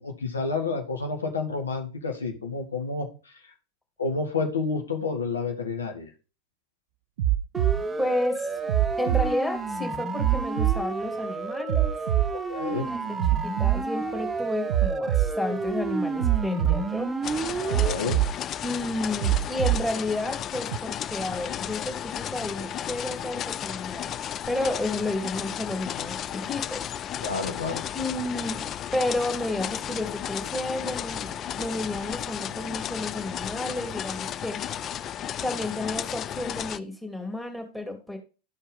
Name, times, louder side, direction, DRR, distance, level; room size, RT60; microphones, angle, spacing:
voice 1, 0.0-3.1 4.0-6.1 12.3-12.9 17.7-18.2 27.2-27.9, left 4 dB, 75° left, 3 dB, 1.6 m, -30 dB
sound 1, 7.2-7.8 8.7-9.3 10.2-10.8 11.7-12.3 13.2-13.8 14.7-15.3 16.2-16.8 17.7-18.3 19.2-19.8 20.7-20.8, right 13 dB, 60° right, 0.5 m, -23 dB
Siren, 7.5-17.9, right 3 dB, 15° right, 0.9 m, -31 dB
voice 2, 8.0-8.5 9.0-11.9 12.8-17.2 18.6-24.2 24.5-26.9 27.9-34.8 35.4-38.2, left 1 dB, 5° left, 2 dB, 2.4 m, -31 dB
sound 2, 17.2-36.8, left 10 dB, 30° left, 0.4 m, -34 dB
13.0 x 4.5 x 3.6 m, 0.33 s
figure-of-eight pair, 85°, 0 cm